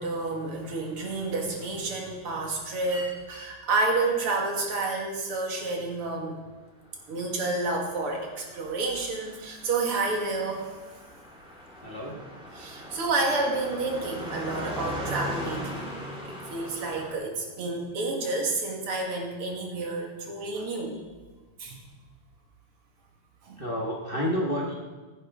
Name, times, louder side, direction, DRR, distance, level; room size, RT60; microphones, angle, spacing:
voice 1, 0.0-6.4 7.1-10.6 12.5-15.9 16.5-20.9 21.6-21.8 23.5-23.6, right 3 dB, 80° right, 0 dB, 2.7 m, -29 dB
Car passing by, 7.2-17.1, equal, 5° right, 1.7 m, -39 dB
voice 2, 11.8-12.3 23.6-24.7, equal, 30° left, -3 dB, 1.1 m, -29 dB
15.5 x 9.3 x 3.7 m, 1.3 s
omnidirectional pair, 2.4 m